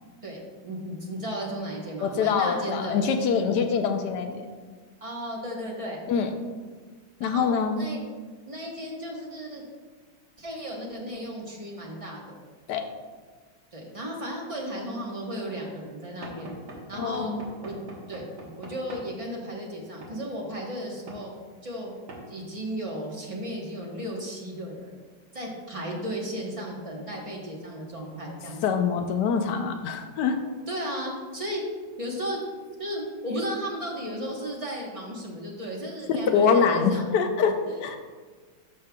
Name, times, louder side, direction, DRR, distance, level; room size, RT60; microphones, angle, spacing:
voice 1, 0.2-3.0 5.0-6.0 7.2-8.0 8.4-9.6 10.4-12.4 13.7-16.6 16.9-17.3 17.6-17.7 18.1-21.3 21.6-21.9 22.3-24.9 25.3-28.6 30.7-31.6 32.0-32.4 32.8-37.0 37.7-38.0, equal, 25° right, -2 dB, 0.8 m, -35 dB
voice 2, 2.0-4.5 6.1-6.3 7.2-7.9 12.7-12.8 17.0-17.4 28.6-30.4 36.1-38.0, left 6 dB, 70° left, 6 dB, 1.1 m, -24 dB
Knock / Wood, 16.2-19.1 20.0-20.2 21.1-21.3 22.1-22.3, right 2 dB, 60° right, 1.7 m, -42 dB
13.0 x 5.3 x 2.3 m, 1.4 s
omnidirectional pair, 2.2 m